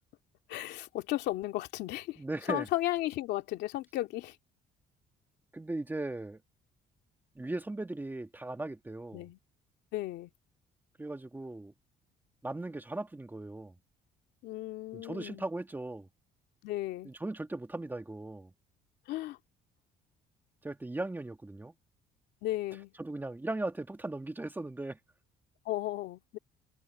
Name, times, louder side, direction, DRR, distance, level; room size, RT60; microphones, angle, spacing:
voice 1, 0.5-2.2 2.5-4.4 9.1-9.4 9.9-10.3 14.4-15.4 16.6-17.1 19.1-19.4 22.4-22.9 25.6-26.4, left 16 dB, 85° left, 2.6 m, -34 dB
voice 2, 2.2-2.7 5.5-6.4 7.4-9.3 11.0-11.7 12.4-13.7 14.9-16.1 17.0-18.5 20.6-21.7 23.0-25.0, right 2 dB, 10° right, 2.2 m, -38 dB
cardioid pair, 110°, 17 cm